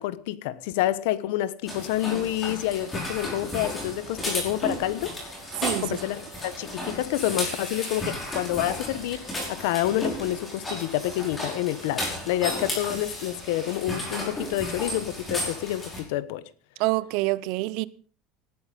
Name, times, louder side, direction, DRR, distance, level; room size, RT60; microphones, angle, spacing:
voice 1, 0.0-5.1 5.8-16.4, left 14 dB, 70° left, 1.2 m, -28 dB
sound 1, 1.7-16.0, left 1 dB, 10° left, 5.3 m, -34 dB
voice 2, 5.6-6.0 16.8-17.9, right 20 dB, 50° right, 0.7 m, -26 dB
18.5 x 12.0 x 5.4 m
cardioid pair, 180°, 0 cm